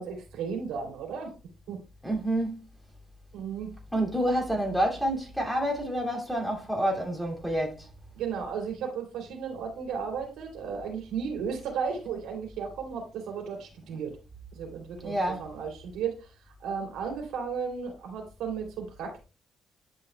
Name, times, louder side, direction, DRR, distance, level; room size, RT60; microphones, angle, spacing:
voice 1, 0.0-1.3 1.7-1.8 3.3-3.7 8.1-14.2 14.5-16.3 16.6-19.2, right 6 dB, 85° right, 2.9 m, -34 dB
voice 2, 2.0-2.6 3.9-7.9 15.0-15.5, right 1 dB, ahead, 2.5 m, -28 dB
10.5 x 5.5 x 2.2 m
cardioid pair, 90°, 0 cm